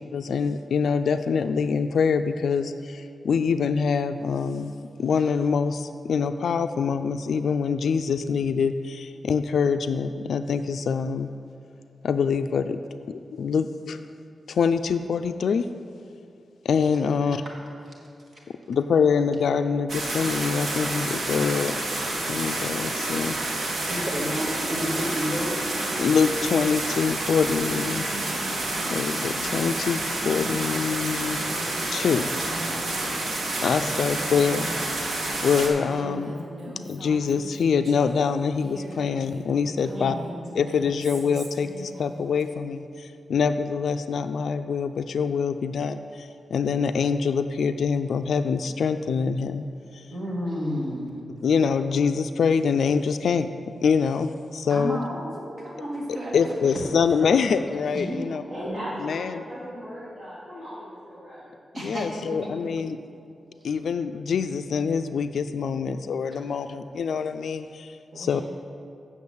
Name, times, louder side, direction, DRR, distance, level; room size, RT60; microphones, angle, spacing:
voice 1, 0.1-4.7 5.0-11.3 12.0-12.8 13.1-14.0 14.5-15.7 16.6-17.4 18.7-21.8 22.3-23.4 26.0-28.1 28.9-31.4 31.9-32.3 33.6-34.7 35.4-36.5 36.9-40.2 40.5-49.6 49.9-50.1 51.4-53.5 53.8-55.0 56.3-58.4 59.0-59.4 61.8-63.0 63.6-68.4, left 6 dB, 70° left, 9 dB, 0.3 m, -25 dB
sound 1, 19.9-35.7, right 2 dB, 70° right, 1.7 m, -29 dB
voice 2, 23.9-25.7 32.6-32.8 33.5-33.8 35.0-35.2 38.9-39.0 39.9-40.4 50.1-51.2 54.7-56.7 57.2-57.3 57.9-58.4 59.7-59.8 61.7-62.5 66.5-66.8 68.1-68.4, equal, 35° right, -3 dB, 1.5 m, -32 dB
Female speech woman speaking, 28.1-38.2 38.5-42.4, right 1 dB, 55° right, 1.9 m, -41 dB
voice 3, 58.5-61.5, equal, 15° right, -13 dB, 2.7 m, -37 dB
8.2 x 6.8 x 7.1 m, 2.5 s
wide cardioid pair, 160°, 0 cm